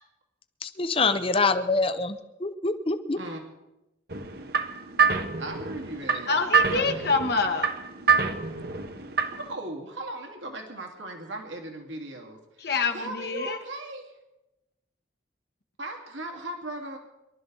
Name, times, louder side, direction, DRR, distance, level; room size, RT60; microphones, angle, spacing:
voice 1, 0.6-3.2, left 3 dB, 30° left, 10 dB, 0.8 m, -25 dB
sound 1, 4.1-9.5, right 5 dB, 55° right, 1.1 m, -26 dB
voice 2, 5.4-6.4 6.7-7.0 9.3-14.2 15.8-17.0, right 1 dB, 80° right, 2 dB, 2.3 m, -38 dB
voice 3, 6.3-7.7 12.6-13.6, left 4 dB, 55° left, 5 dB, 1.4 m, -26 dB
23.5 x 12.5 x 4.0 m, 0.98 s
head